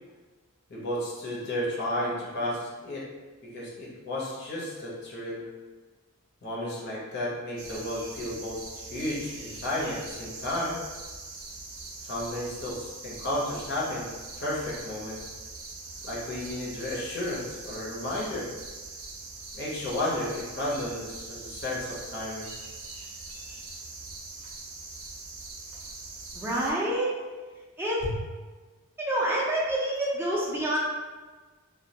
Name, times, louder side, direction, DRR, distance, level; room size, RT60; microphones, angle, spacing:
voice 1, 0.7-3.0 3.4-5.4 6.4-10.8 12.0-14.1 14.4-15.2 16.0-18.5 19.5-22.5 28.0-28.2, left 1 dB, 50° left, -6 dB, 0.6 m, -33 dB
sound 1, 7.6-26.7, right 3 dB, 75° right, 0.5 m, -42 dB
voice 2, 26.3-27.1 27.8-28.0 29.0-30.8, right 1 dB, 10° right, -5 dB, 0.3 m, -27 dB
2.2 x 2.1 x 2.7 m, 1.3 s
head